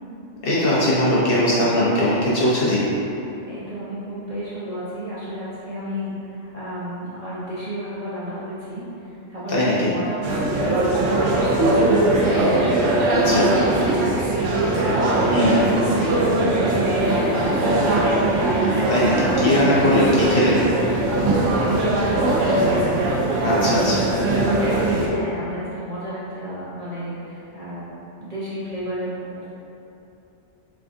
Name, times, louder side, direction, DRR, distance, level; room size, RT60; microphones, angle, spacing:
voice 1, 0.4-2.8 9.5-9.9 13.1-13.5 15.3-15.6 18.9-19.1 19.4-20.6 23.4-24.0, left 1 dB, 55° left, -8 dB, 0.8 m, -19 dB
voice 2, 3.5-14.7 15.2-18.4 19.0-19.4 21.2-22.7 25.0-27.9 28.2-29.5, right 1 dB, 40° right, -11 dB, 0.6 m, -32 dB
sound 1, 10.2-25.1, right 2 dB, 85° right, 1.0 m, -20 dB
3.5 x 3.3 x 2.5 m, 2.8 s
omnidirectional pair, 1.2 m